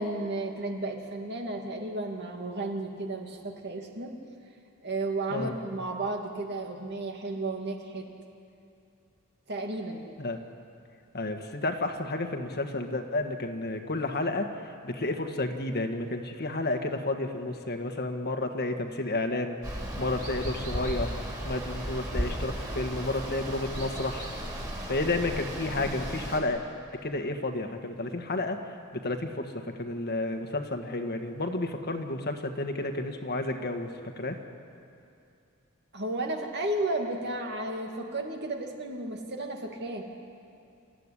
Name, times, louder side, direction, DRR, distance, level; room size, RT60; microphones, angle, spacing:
voice 1, 0.0-4.2 4.8-8.1 9.5-10.1 35.9-40.1, right 2 dB, 50° right, 2 dB, 2.5 m, -33 dB
voice 2, 11.1-21.1 21.4-24.3 24.8-26.6 26.9-29.5 29.8-33.9 34.2-34.4, left 2 dB, 50° left, 6 dB, 1.7 m, -31 dB
Water, 19.6-26.4, equal, 15° right, 4.3 m, -35 dB
28.5 x 14.5 x 10.0 m, 2.5 s
head